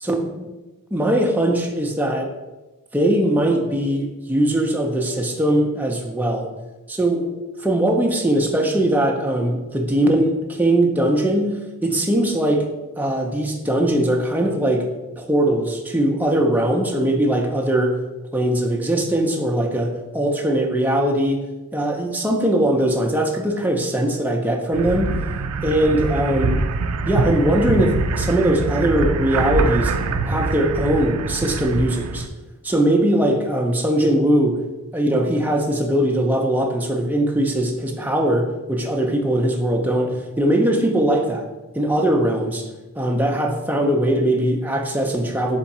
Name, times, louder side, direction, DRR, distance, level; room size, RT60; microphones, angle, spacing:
voice 1, 0.0-0.5 0.9-2.3 2.9-6.5 6.9-7.3 7.6-11.5 11.8-12.7 13.0-14.9 15.2-18.0 18.3-21.4 21.7-25.1 25.6-26.6 27.1-29.9 30.3-32.2 32.6-34.6 34.9-41.4 41.7-42.7 43.0-45.6, right 1 dB, 10° right, 2 dB, 0.4 m, -20 dB
sound 1, 24.7-32.3, right 3 dB, 85° right, 0.4 m, -24 dB
3.7 x 3.4 x 4.1 m, 1.1 s
head